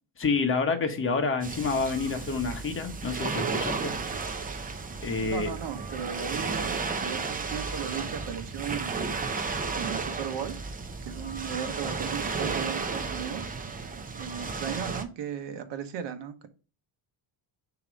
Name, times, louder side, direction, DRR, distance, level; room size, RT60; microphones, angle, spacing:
voice 1, 0.2-3.9 5.0-5.5, left 4 dB, 25° left, 1.1 m, -28 dB
sound 1, 1.4-15.0, right 4 dB, 20° right, 0.5 m, -33 dB
voice 2, 5.2-10.5 11.0-13.5 14.1-16.5, right 8 dB, 60° right, 1.1 m, -36 dB
6.7 x 3.0 x 5.1 m
cardioid pair, 150°, 48 cm